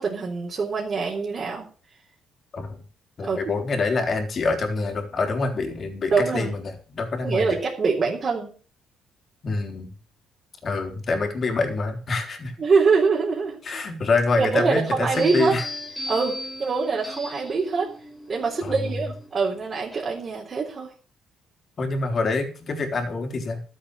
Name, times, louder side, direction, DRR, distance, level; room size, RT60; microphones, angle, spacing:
voice 1, 0.0-1.7 3.2-3.4 6.1-6.5 7.2-8.5 12.6-13.6 14.4-15.5 16.1-17.9 18.3-20.9, right 4 dB, 35° right, -2 dB, 3.8 m, -24 dB
voice 2, 3.2-7.6 9.4-9.9 10.6-12.5 13.6-15.6 18.6-18.9 21.8-23.7, left 3 dB, 40° left, 5 dB, 3.9 m, -26 dB
sound 1, 15.1-20.4, equal, 5° left, 4.6 m, -37 dB
13.5 x 8.0 x 6.8 m, 0.40 s
cardioid pair, 115°, 0 cm